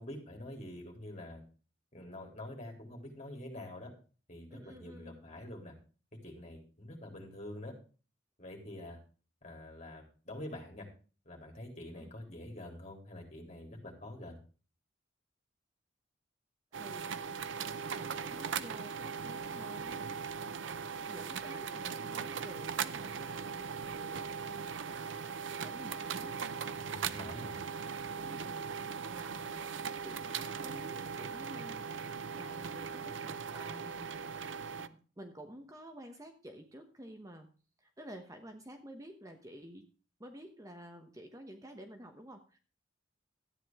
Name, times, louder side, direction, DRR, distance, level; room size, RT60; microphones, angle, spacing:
voice 1, 0.0-1.4 1.9-3.9 4.3-5.7 6.2-7.7 8.4-9.0 9.4-10.9 11.3-14.4 26.8-27.6, left 1 dB, 40° left, 1 dB, 3.6 m, -46 dB
voice 2, 4.5-5.3 12.0-12.1 16.7-17.5 17.9-20.0 20.5-20.6 21.0-26.5 27.3-27.7 28.1-31.8 32.4-34.3 34.8-37.5 37.8-39.9 40.2-42.6, equal, 20° right, 5 dB, 1.1 m, -51 dB
sound 1, 16.7-34.9, right 6 dB, 85° right, 0.6 m, -39 dB
13.0 x 9.3 x 3.7 m, 0.37 s
head